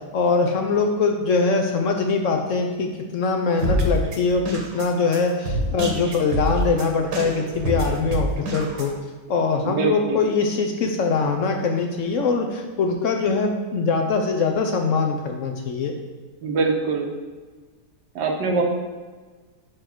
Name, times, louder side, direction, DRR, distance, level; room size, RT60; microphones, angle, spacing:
voice 1, 0.1-8.9 9.3-15.9, left 4 dB, 65° left, 3 dB, 0.8 m, -22 dB
sound 1, 3.6-8.9, equal, 70° right, 1.6 m, -26 dB
voice 2, 9.6-10.2 16.4-17.1 18.1-18.6, right 4 dB, 90° right, 2 dB, 1.6 m, -23 dB
4.7 x 4.7 x 5.9 m, 1.4 s
omnidirectional pair, 1.8 m